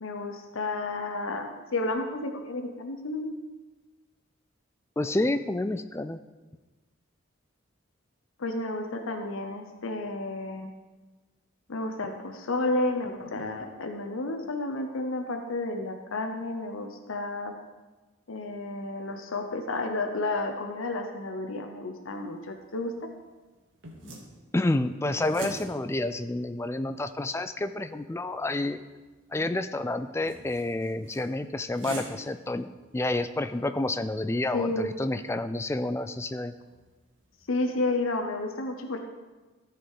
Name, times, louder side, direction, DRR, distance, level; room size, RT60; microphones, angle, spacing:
voice 1, 0.0-3.3 8.4-10.7 11.7-17.5 18.3-23.1 34.5-34.9 37.5-39.0, left 2 dB, 85° left, 5 dB, 0.8 m, -31 dB
voice 2, 5.0-6.2 24.0-24.1 24.5-28.8 29.3-32.7 32.9-36.5, left 2 dB, 15° left, 11 dB, 0.3 m, -29 dB
sound 1, 22.1-37.9, right 2 dB, 70° right, 1.7 m, -49 dB
13.5 x 5.1 x 4.8 m, 1.2 s
head